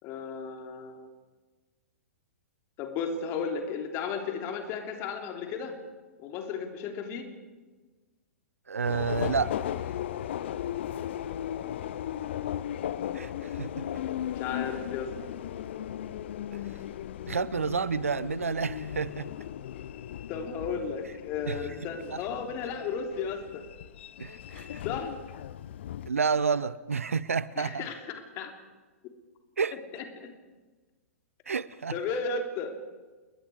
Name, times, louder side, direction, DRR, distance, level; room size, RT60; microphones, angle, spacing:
voice 1, 0.0-1.1 2.8-5.8 6.2-7.3 14.4-15.1 20.3-23.6 24.8-25.1 27.6-28.5 29.9-30.3 31.9-32.7, left 5 dB, 30° left, 4 dB, 3.2 m, -34 dB
voice 2, 8.7-9.5 13.1-13.8 17.3-19.3 21.5-21.6 22.1-22.2 24.2-24.8 26.1-27.9 29.6-29.8 31.5-31.9, right 5 dB, 70° right, 19 dB, 0.7 m, -30 dB
Subway metro underground, 8.9-26.1, left 11 dB, 50° left, 0.8 m, -37 dB
29.5 x 21.5 x 4.9 m, 1.3 s
figure-of-eight pair, 110°, 8 cm